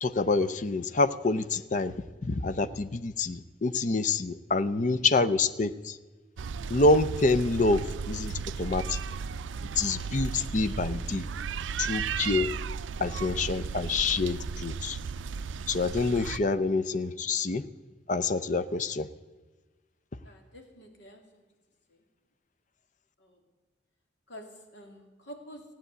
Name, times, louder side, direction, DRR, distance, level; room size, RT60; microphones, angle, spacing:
voice 1, 0.0-2.0 2.2-6.0 6.7-9.0 9.8-11.3 11.8-12.5 13.0-15.0 15.7-17.6 18.1-19.1, left 3 dB, 40° left, 13 dB, 0.5 m, -27 dB
sound 1, 6.4-16.4, right 5 dB, 80° right, 0.4 m, -35 dB
voice 2, 20.2-21.4 21.9-22.0 23.2-23.4 24.3-24.4 24.7-25.6, equal, 70° left, 2 dB, 2.5 m, -48 dB
15.0 x 9.0 x 8.1 m, 1.3 s
head